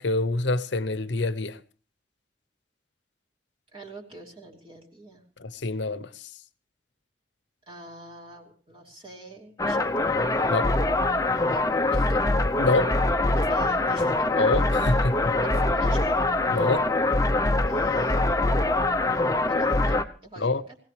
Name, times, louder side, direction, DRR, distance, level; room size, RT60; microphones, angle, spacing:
voice 1, 0.0-1.6 5.4-6.1 10.5-10.7 12.6-12.9 14.4-15.1 16.5-16.9 20.4-20.6, left 2 dB, 75° left, 0.8 m, -26 dB
voice 2, 3.7-5.2 7.7-10.1 11.5-12.2 13.3-14.3 15.4-16.3 17.6-18.7 19.5-20.8, right 2 dB, 30° right, 2.8 m, -43 dB
sound 1, 9.6-20.0, left 2 dB, 20° left, 0.7 m, -23 dB
23.5 x 17.5 x 3.3 m
head